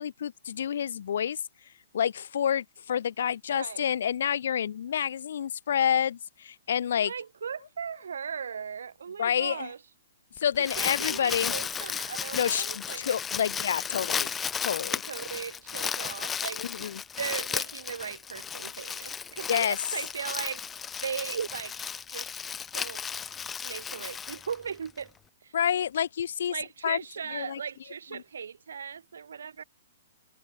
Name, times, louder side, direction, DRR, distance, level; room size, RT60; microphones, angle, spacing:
voice 1, 0.0-1.4 1.9-7.1 9.2-9.7 10.4-11.5 12.3-14.3 14.6-15.0 16.6-17.0 19.5-19.8 25.5-26.5 26.8-27.0 27.3-27.6 28.1-28.2, left 9 dB, 65° left, 0.9 m, -28 dB
voice 2, 3.5-3.9 7.0-9.8 10.6-13.2 15.1-16.9 17.2-20.7 21.0-21.7 22.1-22.3 22.7-23.0 23.6-25.1 25.4-25.6 26.5-29.6, right 7 dB, 85° right, 2.5 m, -38 dB
Crumpling crinkling, 10.4-25.0, left 7 dB, 10° left, 0.4 m, -34 dB
hypercardioid pair, 155°, 0 cm